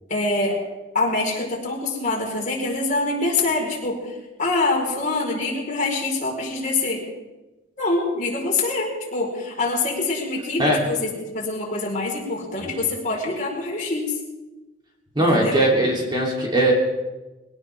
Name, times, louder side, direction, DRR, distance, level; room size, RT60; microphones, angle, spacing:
voice 1, 0.1-0.6 0.9-7.0 7.8-14.1 15.2-15.7, left 2 dB, 45° left, -2 dB, 4.5 m, -25 dB
voice 2, 15.1-16.7, right 1 dB, 25° right, -2 dB, 3.2 m, -20 dB
22.5 x 17.5 x 3.6 m, 1.1 s
head